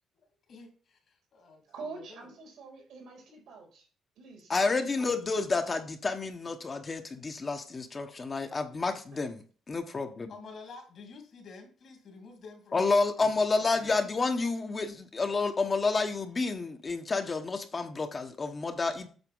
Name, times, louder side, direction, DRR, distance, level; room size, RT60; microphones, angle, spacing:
voice 1, 0.5-1.0 1.3-2.3 10.3-12.8 13.3-13.4 13.7-13.8, left 4 dB, 60° left, 4 dB, 2.5 m, -49 dB
voice 2, 1.7-3.9 4.2-5.8, right 4 dB, 80° right, -1 dB, 4.0 m, -46 dB
voice 3, 4.5-10.4 12.7-19.1, left 3 dB, 35° left, 6 dB, 1.1 m, -30 dB
8.1 x 4.2 x 5.5 m, 0.40 s
cardioid pair, 90°, 0 cm